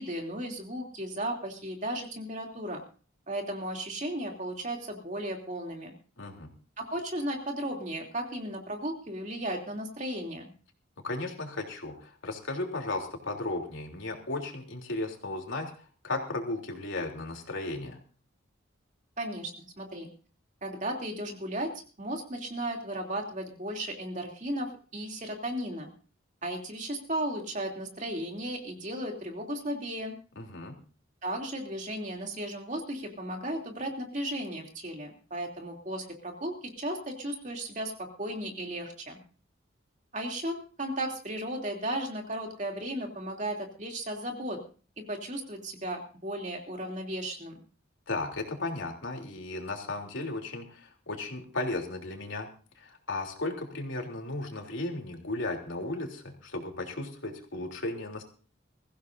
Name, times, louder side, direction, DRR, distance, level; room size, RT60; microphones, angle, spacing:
voice 1, 0.0-2.8 3.3-5.9 6.8-10.5 19.2-20.1 20.6-21.7 22.0-25.9 26.4-30.1 31.2-39.2 40.1-44.6 45.0-47.6, right 1 dB, 40° right, 2 dB, 3.0 m, -35 dB
voice 2, 6.2-6.5 11.0-15.7 16.0-18.0 30.4-30.7 48.1-52.5 52.8-58.2, left 2 dB, 75° left, 2 dB, 3.4 m, -35 dB
22.5 x 15.5 x 2.7 m, 0.39 s
head